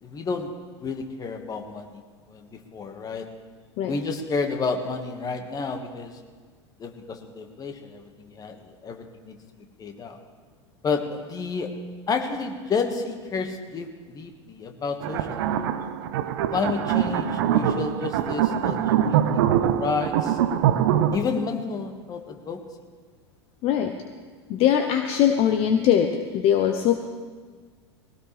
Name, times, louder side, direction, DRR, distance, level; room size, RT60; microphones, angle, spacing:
voice 1, 0.0-2.0 2.3-3.3 3.8-6.1 6.8-9.4 9.8-10.2 10.8-11.8 12.1-15.8 16.5-19.2 19.6-20.4 21.1-22.6, left 4 dB, 25° left, 5 dB, 1.7 m, -30 dB
sound 1, 15.0-21.2, right 10 dB, 60° right, 0.9 m, -23 dB
voice 2, 23.6-23.9 24.5-26.9, left 9 dB, 45° left, 6 dB, 1.0 m, -21 dB
21.0 x 17.0 x 3.4 m, 1.5 s
figure-of-eight pair, 85°, 14 cm